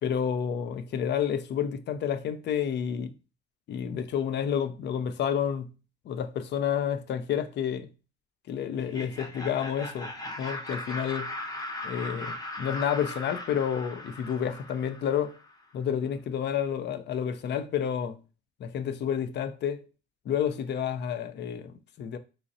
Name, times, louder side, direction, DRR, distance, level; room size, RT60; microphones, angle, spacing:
voice 1, 0.0-3.1 3.7-5.7 6.1-7.9 8.5-11.3 11.8-15.4 15.7-18.2 18.6-19.8 20.3-22.2, left 8 dB, 60° left, 0.5 m, -30 dB
Laughter, 8.8-15.6, left 1 dB, 20° left, 0.7 m, -39 dB
3.8 x 3.1 x 2.6 m
cardioid pair, 90°, 20 cm